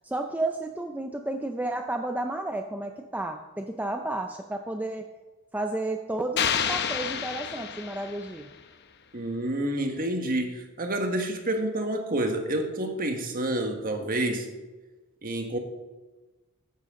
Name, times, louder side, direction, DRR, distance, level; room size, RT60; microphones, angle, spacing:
voice 1, 0.0-5.1 5.5-8.5, right 2 dB, 5° right, 5 dB, 0.5 m, -32 dB
sound 1, 6.4-8.5, left 7 dB, 50° left, 0.8 m, -29 dB
voice 2, 9.1-14.5 15.2-15.6, right 1 dB, 40° right, 4 dB, 1.5 m, -28 dB
14.0 x 10.5 x 3.8 m, 1.2 s
head